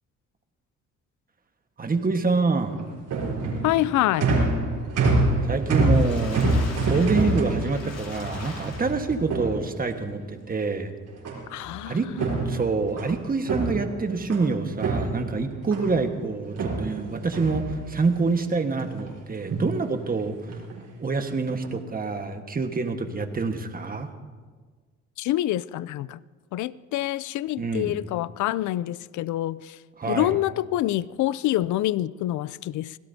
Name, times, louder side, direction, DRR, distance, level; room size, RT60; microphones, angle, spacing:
voice 1, 1.8-2.9 5.4-6.4 6.9-10.9 11.9-12.1 12.5-20.4 21.0-24.1 27.6-27.9 30.0-30.3, right 4 dB, 30° right, 6 dB, 1.5 m, -26 dB
sound 1, 2.6-10.1 11.2-11.7 12.0-14.5 14.8-16.0 16.5-18.2 18.6-19.1 19.4-19.8 20.5-20.8 21.4-21.7, right 2 dB, 80° right, 4.6 m, -26 dB
voice 2, 3.6-4.3 11.5-12.7 25.2-26.2 26.5-29.8 30.1-33.0, left 14 dB, 75° left, 19 dB, 0.5 m, -26 dB
Water / Splash splatter, 5.5-9.3 9.9-10.0 10.3-10.4, left 3 dB, 55° left, 4.5 m, -41 dB
25.0 x 17.0 x 2.8 m, 1.5 s
cardioid pair, 90°, 30 cm